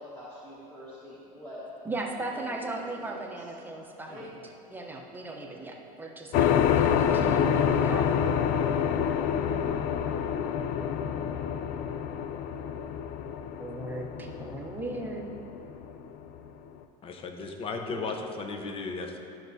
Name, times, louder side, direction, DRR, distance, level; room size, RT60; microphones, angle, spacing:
voice 1, 0.0-1.6 2.2-3.5 4.0-4.3, equal, 15° left, -8 dB, 1.4 m, -46 dB
voice 2, 1.8-4.3 4.7-8.2 13.6-15.4, right 2 dB, 10° right, 0 dB, 0.8 m, -37 dB
sound 1, 6.3-16.5, left 8 dB, 45° left, 0.4 m, -27 dB
voice 3, 17.0-19.2, left 3 dB, 30° left, 4 dB, 0.7 m, -35 dB
11.5 x 6.0 x 2.7 m, 2.8 s
supercardioid pair, 120°, 19 cm